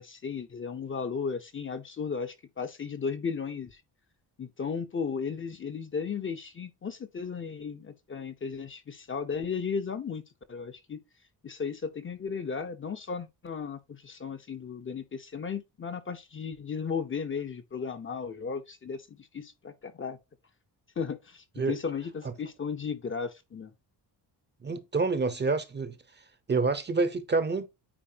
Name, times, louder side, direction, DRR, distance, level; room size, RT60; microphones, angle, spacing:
voice 1, 0.0-3.8 4.4-10.2 10.5-11.0 11.4-20.2 21.0-23.7, left 6 dB, 30° left, 0.7 m, -35 dB
voice 2, 24.6-26.0 26.5-27.7, right 4 dB, 25° right, 0.7 m, -27 dB
8.8 x 4.5 x 2.8 m
wide cardioid pair, 175°, 41 cm